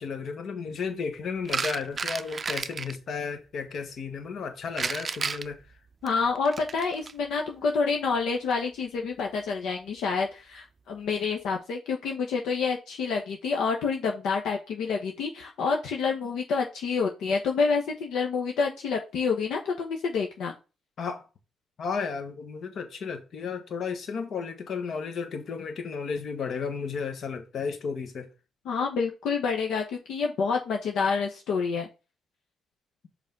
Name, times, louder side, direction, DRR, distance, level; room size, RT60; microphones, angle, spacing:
voice 1, 0.0-5.6 21.0-21.2 21.8-28.3, left 5 dB, 60° left, 1.5 m, -33 dB
sound 1, 1.4-2.9 4.8-7.1 8.3-8.5, right 5 dB, 35° right, 0.4 m, -32 dB
voice 2, 6.0-20.5 28.6-31.9, left 5 dB, 80° left, 1.2 m, -28 dB
5.4 x 4.0 x 5.3 m
cardioid pair, 90°, 0 cm